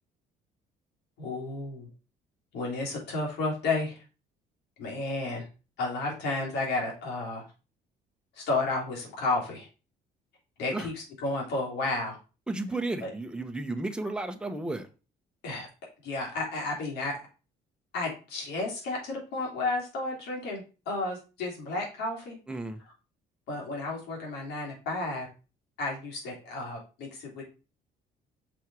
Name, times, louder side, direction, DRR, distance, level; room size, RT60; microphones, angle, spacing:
voice 1, 1.2-1.9 2.5-4.0 4.8-5.5 5.8-7.4 8.3-9.7 10.6-12.2 13.0-13.1 15.4-15.7 16.0-17.1 17.9-22.4 23.5-25.3 25.8-27.4, left 2 dB, 80° left, 3.3 m, -32 dB
voice 2, 12.5-14.9 22.5-22.8, right 2 dB, 5° right, 0.9 m, -33 dB
6.1 x 4.4 x 4.7 m
cardioid pair, 110°, 17 cm